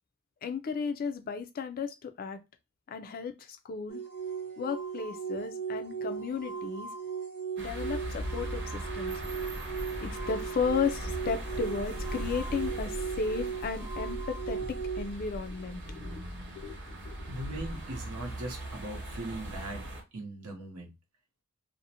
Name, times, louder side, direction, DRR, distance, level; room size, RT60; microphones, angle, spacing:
voice 1, 0.4-2.4 2.9-4.0 4.6-6.9 7.6-9.2 10.0-14.6 15.0-16.2 16.6-17.4, left 5 dB, 40° left, 0.3 m, -34 dB
sound 1, 3.9-15.1, right 6 dB, 25° right, 0.8 m, -38 dB
sound 2, 7.6-20.0, right 1 dB, 55° right, 0.9 m, -39 dB
voice 2, 17.3-19.8 20.1-20.9, right 1 dB, 85° right, 0.7 m, -39 dB
2.5 x 2.0 x 2.7 m
head